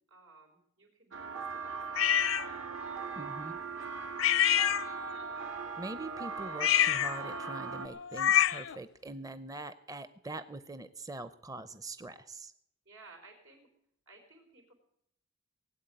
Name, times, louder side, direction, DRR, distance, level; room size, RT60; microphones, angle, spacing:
voice 1, 0.1-4.9 12.8-13.7 14.1-14.7, right 2 dB, 90° right, 2 dB, 4.4 m, -59 dB
sound 1, 1.1-7.9, right 5 dB, 70° right, 1.8 m, -40 dB
sound 2, 2.0-2.5 4.2-5.3 6.5-8.8, left 10 dB, 80° left, 0.6 m, -27 dB
voice 2, 3.2-3.5 5.8-12.5, right 2 dB, 20° right, 12 dB, 0.6 m, -43 dB
18.5 x 8.2 x 9.1 m, 0.76 s
head